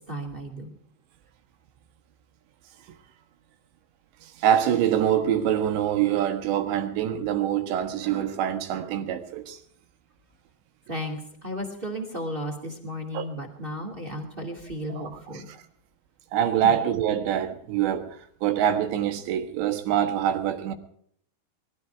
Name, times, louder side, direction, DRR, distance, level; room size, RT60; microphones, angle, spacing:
voice 1, 0.1-0.8 10.9-15.5 16.6-16.7, equal, 20° right, 1.7 m, -34 dB
voice 2, 4.2-9.6 13.1-13.3 14.9-15.1 15.3-15.6 16.3-20.8, right 10 dB, 80° right, 3.7 m, -25 dB
22.0 x 13.0 x 4.6 m
omnidirectional pair, 5.0 m